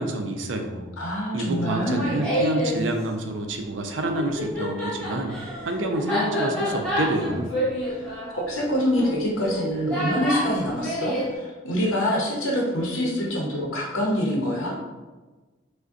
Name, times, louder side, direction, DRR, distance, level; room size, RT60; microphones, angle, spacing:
voice 1, 0.0-0.9 1.3-5.3 5.7-7.5, right 2 dB, 70° right, 4 dB, 0.4 m, -28 dB
voice 2, 1.0-2.0 7.9-8.0 8.3-14.7, equal, 90° left, -3 dB, 0.7 m, -25 dB
Laughter, 1.7-2.8 4.0-11.3, equal, 5° left, 1.1 m, -28 dB
4.9 x 2.1 x 2.6 m, 1.2 s
head